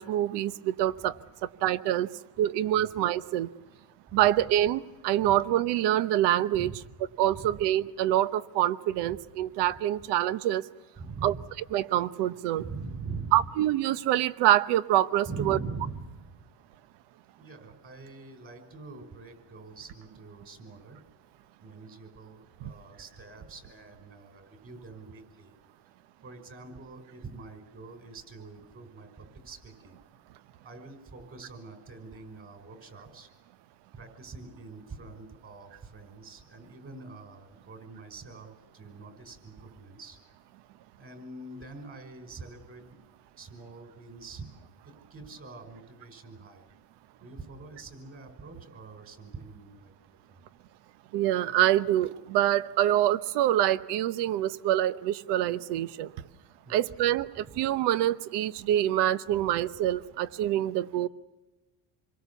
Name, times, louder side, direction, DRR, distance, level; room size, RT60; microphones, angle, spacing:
voice 1, 0.0-2.1 2.4-3.5 4.1-6.7 7.2-10.6 11.2-11.3 11.7-12.6 13.3-15.6 51.1-56.1 56.7-61.1, right 12 dB, 75° right, 15 dB, 1.0 m, -26 dB
voice 2, 2.1-2.9 4.1-4.2 5.2-5.4 6.5-6.8 7.3-7.6 9.0-9.2 11.0-11.5 12.6-13.5 15.3-16.4 17.4-21.0 21.6-25.6 26.2-30.0 30.6-33.3 33.9-40.2 41.0-43.1 43.4-44.5 44.8-46.7 47.2-49.9 56.6-57.2 57.5-57.6, right 4 dB, 30° right, 7 dB, 5.4 m, -44 dB
27.0 x 22.5 x 7.1 m, 1.2 s
cardioid pair, 140°, 41 cm